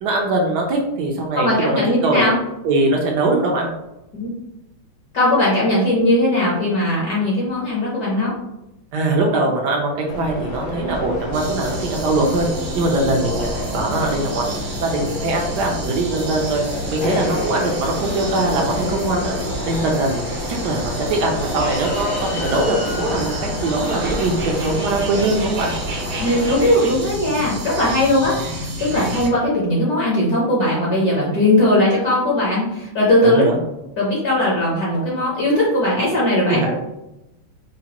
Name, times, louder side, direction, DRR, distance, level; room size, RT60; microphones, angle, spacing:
voice 1, 0.0-2.3 2.6-3.7 8.9-12.5 12.7-14.5 14.8-16.6 16.9-19.4 19.7-25.7 33.2-33.6 36.5-36.8, right 2 dB, 70° right, 0 dB, 1.0 m, -21 dB
voice 2, 1.4-2.3 4.1-4.3 5.1-8.3 26.2-33.4 34.0-36.8, left 1 dB, 60° left, -5 dB, 1.1 m, -19 dB
sound 1, 10.1-26.7, left 1 dB, 85° left, 0.8 m, -29 dB
sound 2, 11.3-29.3, right 1 dB, 90° right, 1.7 m, -30 dB
4.9 x 2.1 x 2.8 m, 0.92 s
omnidirectional pair, 2.3 m